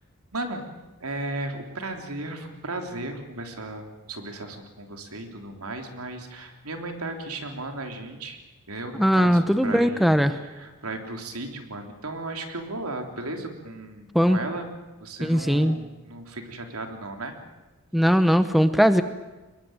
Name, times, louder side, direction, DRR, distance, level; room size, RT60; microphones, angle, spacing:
voice 1, 0.3-0.6 1.0-8.4 8.7-14.7 15.0-17.3, right 2 dB, 75° right, 5 dB, 3.5 m, -35 dB
voice 2, 8.9-10.3 14.1-14.4 15.2-15.8 17.9-19.0, equal, ahead, 11 dB, 0.8 m, -19 dB
24.5 x 21.5 x 9.0 m, 1.1 s
head